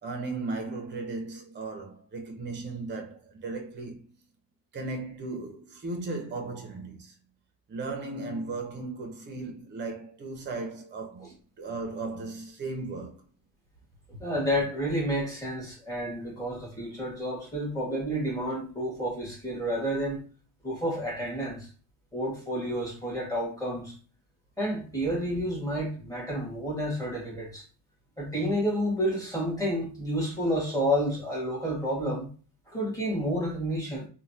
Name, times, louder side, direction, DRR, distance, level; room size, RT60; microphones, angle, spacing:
voice 1, 0.0-4.1 4.7-7.2 7.7-11.3 11.6-13.2, right 3 dB, 30° right, 0.6 m, -36 dB
voice 2, 14.1-20.2 20.6-21.7 22.1-23.9 24.6-27.6 28.2-32.3 32.7-34.1, equal, 10° left, 1.5 m, -30 dB
3.1 x 2.2 x 2.7 m
cardioid pair, 135°, 38 cm